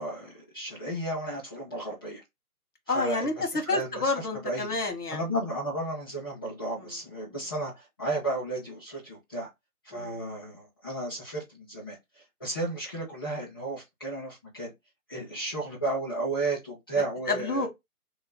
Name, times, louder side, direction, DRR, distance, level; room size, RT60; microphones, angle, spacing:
voice 1, 0.0-2.2 2.9-4.8 5.1-9.5 9.8-12.0 12.4-14.7 15.1-17.6, right 2 dB, 15° left, 1.2 m, -33 dB
voice 2, 2.9-5.2 6.7-6.9 9.9-10.2 17.3-17.7, left 3 dB, 80° left, 1.5 m, -29 dB
3.0 x 2.1 x 3.7 m
figure-of-eight pair, 175°, 45 cm